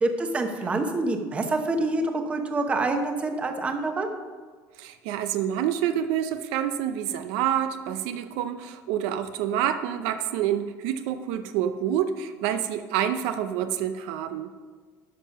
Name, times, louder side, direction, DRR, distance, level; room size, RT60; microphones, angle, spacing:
voice 1, 0.0-4.1, right 2 dB, 15° right, 5 dB, 0.9 m, -26 dB
voice 2, 4.8-14.6, right 10 dB, 75° right, 9 dB, 0.6 m, -27 dB
12.5 x 5.5 x 5.7 m, 1.5 s
cardioid pair, 165°, 7 cm